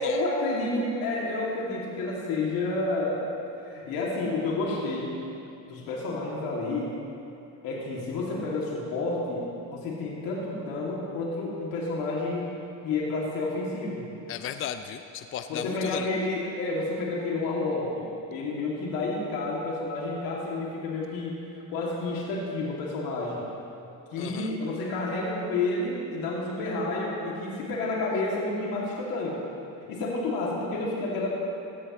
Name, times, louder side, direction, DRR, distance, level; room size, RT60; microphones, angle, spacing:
voice 1, 0.0-3.2 3.6-5.2 5.7-6.9 7.6-12.5 12.8-14.1 15.5-21.3 21.7-23.5 24.1-29.4 29.9-31.4, left 2 dB, 80° left, -4 dB, 2.5 m, -30 dB
voice 2, 14.3-16.1 24.2-24.5, left 9 dB, 40° left, 9 dB, 0.5 m, -35 dB
16.5 x 14.0 x 3.1 m, 2.7 s
cardioid pair, 120°, 34 cm